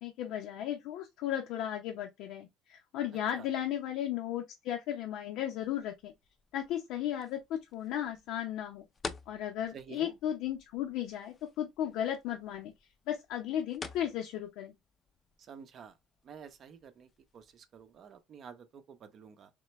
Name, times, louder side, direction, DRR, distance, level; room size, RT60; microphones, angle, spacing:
voice 1, 0.0-6.1 6.5-8.8 9.3-12.7 13.1-14.8, left 11 dB, 70° left, 0.7 m, -35 dB
sound 1, 5.6-18.2, left 4 dB, 25° left, 0.5 m, -51 dB
voice 2, 9.7-10.1 15.4-15.9 16.2-17.1 17.3-19.5, right 7 dB, 40° right, 0.6 m, -50 dB
3.8 x 3.2 x 3.1 m
cardioid pair, 130°, 0 cm